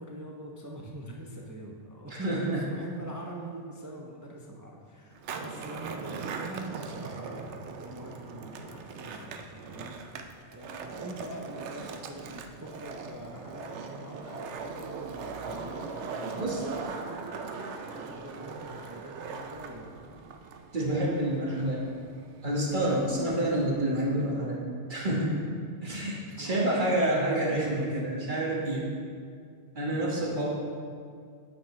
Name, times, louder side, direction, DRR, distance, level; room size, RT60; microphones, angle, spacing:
voice 1, 0.0-17.4 17.8-19.9 26.4-28.0 29.9-30.5, right 1 dB, 25° right, -1 dB, 0.4 m, -43 dB
voice 2, 2.1-2.7 16.4-16.7 17.6-17.7 20.7-21.8 22.4-24.6 24.9-25.5 25.8-28.9 29.7-30.5, right 1 dB, 45° right, -4 dB, 1.4 m, -28 dB
Skateboard, 5.1-23.8, right 4 dB, 75° right, 0.9 m, -40 dB
8.8 x 7.3 x 3.2 m, 2.2 s
omnidirectional pair, 1.2 m